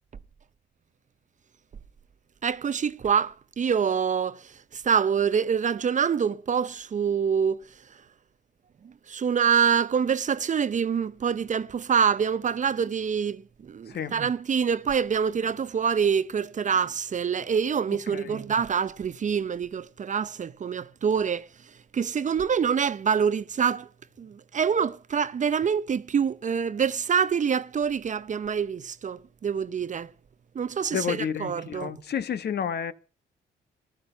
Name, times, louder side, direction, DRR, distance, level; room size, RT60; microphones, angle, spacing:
voice 1, 2.4-7.6 9.1-21.5 21.9-23.9 24.2-30.1 30.5-32.0, right 7 dB, 40° right, 0.7 m, -26 dB
voice 2, 18.1-18.4 30.9-32.9, left 8 dB, 55° left, 1.2 m, -30 dB
14.0 x 12.0 x 5.6 m
cardioid pair, 90°, 20 cm